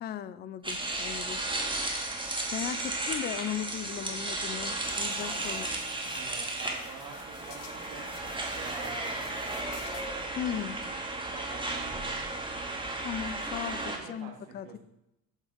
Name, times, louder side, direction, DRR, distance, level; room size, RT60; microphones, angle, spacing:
voice 1, 0.0-1.4 2.5-5.7 10.4-10.8 13.0-14.8, left 10 dB, 25° left, 16 dB, 0.3 m, -37 dB
sound 1, 0.6-14.0, right 2 dB, 10° right, 1.6 m, -34 dB
sound 2, 4.8-10.3, left 7 dB, 60° left, 1.2 m, -51 dB
voice 2, 6.0-9.7 11.3-12.1 13.8-14.3 14.6-14.8, right 6 dB, 70° right, 2 dB, 1.9 m, -47 dB
8.0 x 7.0 x 3.7 m, 0.86 s
hypercardioid pair, 65°, 48 cm